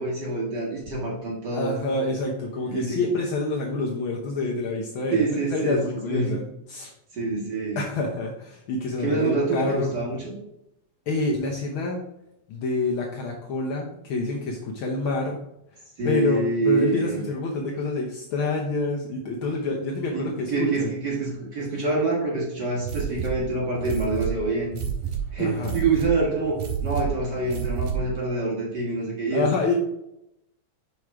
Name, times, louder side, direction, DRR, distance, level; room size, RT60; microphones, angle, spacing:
voice 1, 0.0-1.8 2.7-3.0 5.1-6.4 7.1-7.8 9.0-10.4 16.0-17.2 20.1-24.7 25.3-29.5, right 3 dB, 40° right, -3 dB, 1.8 m, -26 dB
voice 2, 1.5-6.4 6.7-6.9 7.8-9.9 11.1-12.0 12.5-15.4 16.0-20.9 25.4-25.7 29.3-29.7, left 3 dB, 75° left, -1 dB, 1.1 m, -27 dB
sound 1, 22.8-28.2, right 8 dB, 70° right, 2.4 m, -30 dB
5.4 x 4.8 x 4.7 m, 0.82 s
omnidirectional pair, 3.3 m